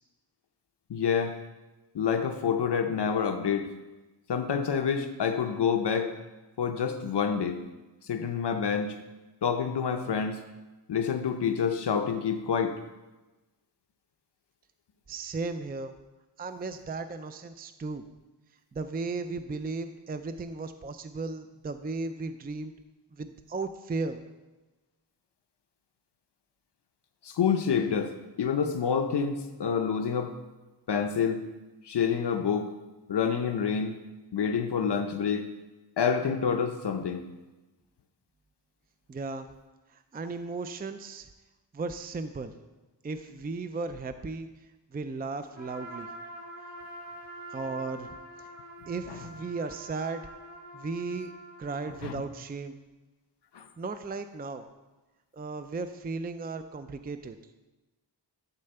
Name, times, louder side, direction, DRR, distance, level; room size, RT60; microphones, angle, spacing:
voice 1, 0.9-1.4 1.9-3.7 4.3-6.1 6.6-7.6 8.1-8.9 9.4-10.4 10.9-12.7 27.2-30.3 30.9-31.4 31.8-32.7 33.1-34.0 34.3-35.5 36.0-37.3 52.0-52.2 53.5-53.6, left 6 dB, 70° left, 6 dB, 0.8 m, -27 dB
voice 2, 15.1-16.0 16.4-18.0 18.7-22.7 23.1-24.2 39.1-39.5 39.9-41.3 41.7-42.5 43.0-46.1 47.5-48.1 48.4-48.5 48.9-50.2 50.7-51.3 51.6-52.8 53.8-54.7 55.3-57.4, right 3 dB, 25° right, 9 dB, 0.4 m, -35 dB
Trumpet, 45.5-52.0, equal, 40° left, 2.6 m, -45 dB
12.0 x 4.4 x 6.7 m, 1.1 s
wide cardioid pair, 115°, 42 cm